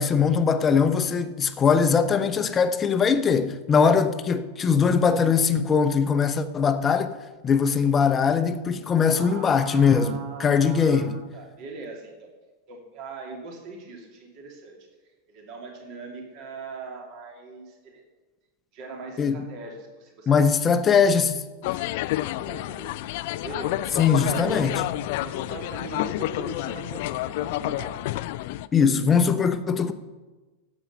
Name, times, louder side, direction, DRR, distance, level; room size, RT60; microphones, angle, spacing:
voice 1, 0.0-7.1 7.4-11.1 19.2-19.4 20.3-21.4 24.0-24.7 28.7-29.9, left 6 dB, 20° left, 0.8 m, -21 dB
voice 2, 9.0-12.3 12.7-14.8 15.3-18.0 18.7-20.3 20.9-21.0 22.1-23.0 23.4-24.8 25.2-28.0, right 4 dB, 40° right, 2.5 m, -40 dB
sound 1, 21.6-28.7, left 16 dB, 50° left, 0.3 m, -29 dB
12.5 x 8.1 x 5.5 m
figure-of-eight pair, 90°, 0 cm